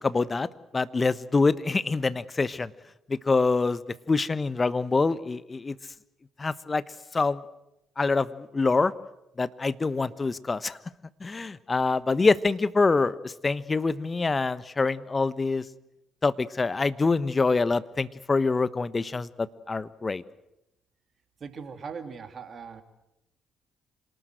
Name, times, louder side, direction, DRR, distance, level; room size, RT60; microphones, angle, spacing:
voice 1, 0.0-0.5 0.7-2.7 3.1-3.8 4.1-5.8 6.4-6.8 7.1-7.4 8.0-8.9 9.4-10.8 11.2-15.6 16.2-20.2, left 3 dB, 30° left, 16 dB, 1.1 m, -25 dB
voice 2, 21.4-22.8, right 5 dB, 50° right, 8 dB, 2.8 m, -39 dB
26.5 x 19.0 x 7.9 m, 0.88 s
hypercardioid pair, 50°, 0 cm